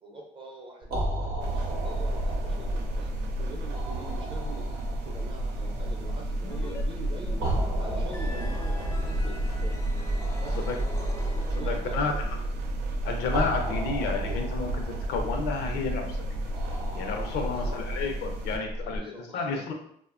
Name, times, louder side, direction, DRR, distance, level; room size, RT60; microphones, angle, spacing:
voice 1, 0.0-3.1 3.4-7.4 7.8-9.8 10.4-10.6 11.5-12.5 13.6-13.8 17.3-17.8 18.8-19.6, right 2 dB, 30° right, 0 dB, 0.6 m, -44 dB
sound 1, 0.8-19.0, right 1 dB, 65° right, 0.7 m, -36 dB
sound 2, 1.4-18.6, right 1 dB, 90° right, 0.4 m, -32 dB
sound 3, 6.4-6.8 7.1-12.0, left 2 dB, 15° left, 0.5 m, -37 dB
voice 2, 11.5-12.1 13.0-16.2 16.9-19.7, left 5 dB, 75° left, 3 dB, 0.5 m, -31 dB
2.8 x 2.1 x 2.4 m, 0.68 s
cardioid pair, 110°, 17 cm